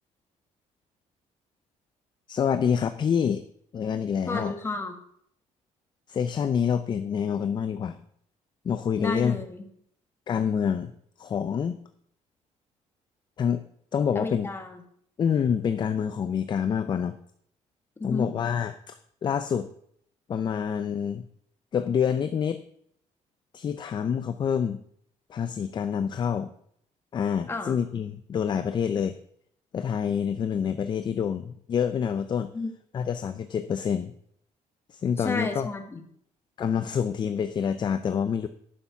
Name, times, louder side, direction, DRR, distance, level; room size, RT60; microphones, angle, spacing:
voice 1, 2.3-3.4 3.7-4.5 6.1-8.0 8.6-9.4 10.3-10.9 11.2-11.8 13.4-13.6 13.9-14.5 15.2-17.2 18.0-19.7 20.3-21.3 21.7-22.6 23.5-24.8 25.3-26.5 27.1-29.2 29.7-32.5 32.9-34.1 34.9-35.7 36.6-38.5, left 7 dB, 35° left, 11 dB, 0.5 m, -27 dB
voice 2, 4.3-5.0 9.0-9.6 14.1-14.8 18.0-18.3 27.5-27.8 32.5-32.7 35.2-36.0, left 3 dB, 20° left, 5 dB, 1.6 m, -31 dB
11.0 x 6.9 x 5.8 m, 0.67 s
cardioid pair, 140°, 13 cm